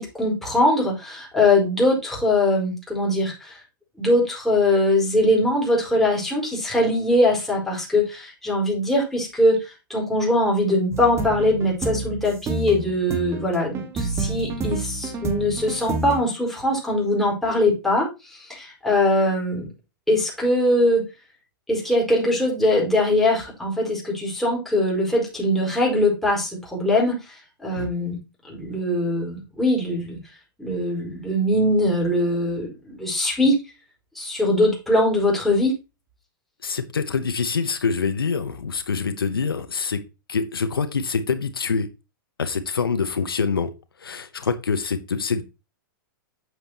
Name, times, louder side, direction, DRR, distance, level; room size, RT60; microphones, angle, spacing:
voice 1, 0.0-3.6 4.0-19.7 20.1-21.0 21.7-27.3 27.6-28.2 28.5-30.2 30.6-33.6 34.1-35.8, left 1 dB, ahead, -4 dB, 4.9 m, -21 dB
sound 1, 10.9-16.2, right 3 dB, 25° right, 1.6 m, -29 dB
voice 2, 36.6-40.0 40.3-41.9 42.4-43.7 44.0-45.4, left 5 dB, 90° left, 10 dB, 0.9 m, -25 dB
8.3 x 7.8 x 2.9 m, 0.27 s
hypercardioid pair, 115°, 12 cm